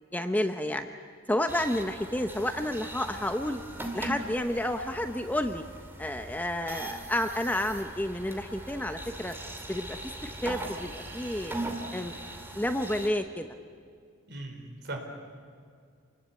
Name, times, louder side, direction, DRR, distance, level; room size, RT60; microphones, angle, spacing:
voice 1, 0.1-0.9 1.3-3.6 3.9-5.6 6.0-9.3 9.7-11.5 11.9-12.2 12.5-13.5, left 1 dB, 10° left, 6 dB, 0.8 m, -30 dB
sound 1, 1.5-13.1, right 1 dB, 10° right, 2.5 m, -40 dB
voice 2, 14.3-15.0, right 2 dB, 55° right, 3 dB, 4.5 m, -38 dB
28.0 x 20.5 x 8.4 m, 2.2 s
head